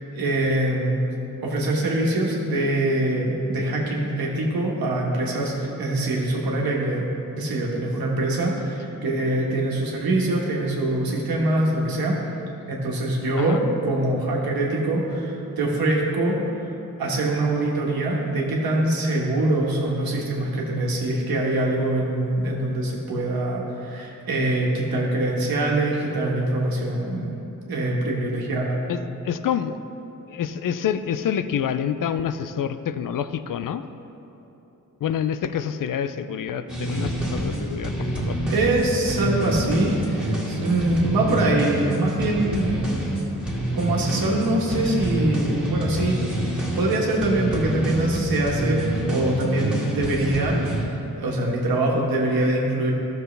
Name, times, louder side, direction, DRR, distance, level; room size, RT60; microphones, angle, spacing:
voice 1, 0.1-1.1 1.4-7.1 7.4-12.1 12.7-16.4 17.0-27.3 27.7-28.8 38.5-43.2 43.7-46.2 46.8-50.8 51.2-52.9, right 1 dB, 90° right, -2 dB, 1.6 m, -24 dB
voice 2, 28.9-29.8 30.3-33.8 35.0-38.4, left 8 dB, 65° left, 11 dB, 0.5 m, -27 dB
sound 1, 36.7-50.9, right 1 dB, 5° right, 1.9 m, -27 dB
13.0 x 6.6 x 3.3 m, 3.0 s
cardioid pair, 85°, 35 cm